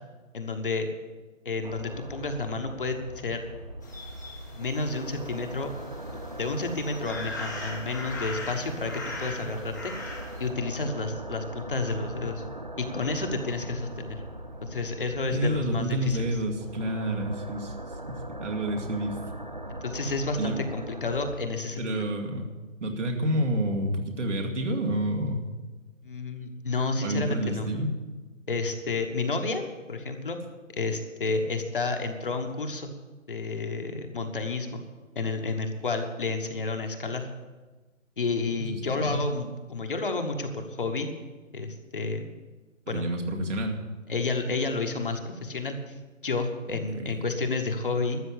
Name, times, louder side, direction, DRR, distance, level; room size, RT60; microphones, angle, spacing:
voice 1, 0.3-0.9 1.4-3.4 4.5-5.7 6.4-9.9 10.4-12.4 12.8-14.2 14.6-16.4 19.8-22.1 26.0-27.7 28.5-30.4 30.7-32.9 33.3-34.8 35.1-37.3 38.2-41.1 41.5-42.2 42.9-43.0 44.1-45.9 46.2-48.2, left 3 dB, 40° left, 5 dB, 1.2 m, -30 dB
sound 1, 1.6-21.4, right 1 dB, 35° right, 0.5 m, -40 dB
sound 2, 3.8-10.5, left 2 dB, 15° left, 0.9 m, -40 dB
voice 2, 15.3-17.7 18.1-19.2 20.4-20.6 21.8-22.5 22.8-25.4 27.0-27.9 38.6-39.2 42.9-43.8 46.9-47.3, right 1 dB, 60° right, 1 dB, 2.4 m, -29 dB
13.0 x 7.6 x 8.7 m, 1.3 s
hypercardioid pair, 170°, 40 cm